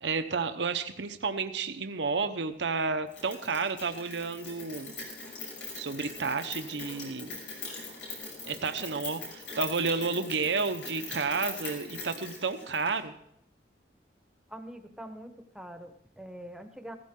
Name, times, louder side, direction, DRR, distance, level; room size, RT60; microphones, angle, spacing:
voice 1, 0.0-4.9 5.8-7.4 8.5-13.1, right 4 dB, 80° right, 8 dB, 0.8 m, -31 dB
Rain, 3.1-13.0, left 3 dB, 90° left, 6.3 m, -41 dB
voice 2, 14.5-16.9, right 1 dB, 5° right, 7 dB, 1.0 m, -44 dB
15.5 x 14.5 x 3.7 m, 0.75 s
head